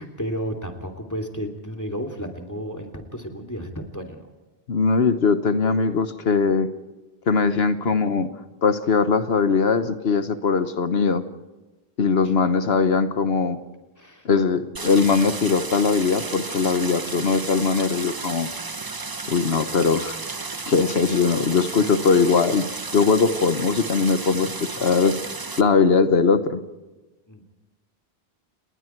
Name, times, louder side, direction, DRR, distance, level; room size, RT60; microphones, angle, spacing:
voice 1, 0.0-4.3 12.2-12.3 14.0-14.3 27.3-27.4, equal, 15° left, 3 dB, 3.0 m, -32 dB
voice 2, 4.7-6.7 7.3-8.3 8.6-11.2 12.0-13.6 14.2-18.5 19.3-20.2 20.7-22.7 22.9-25.2 25.6-26.6, left 5 dB, 75° left, 10 dB, 1.3 m, -20 dB
Stream, 14.7-25.6, right 3 dB, 25° right, 0.7 m, -33 dB
29.5 x 20.5 x 4.6 m, 1.1 s
omnidirectional pair, 1.1 m